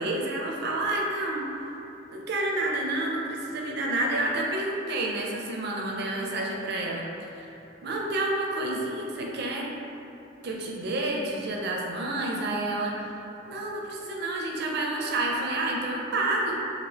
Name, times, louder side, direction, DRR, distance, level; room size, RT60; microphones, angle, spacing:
voice 1, 0.0-1.4 2.1-7.5 7.8-9.7 10.4-13.1 13.5-16.5, right 2 dB, 55° right, -1 dB, 0.4 m, -29 dB
2.8 x 2.4 x 3.3 m, 2.9 s
head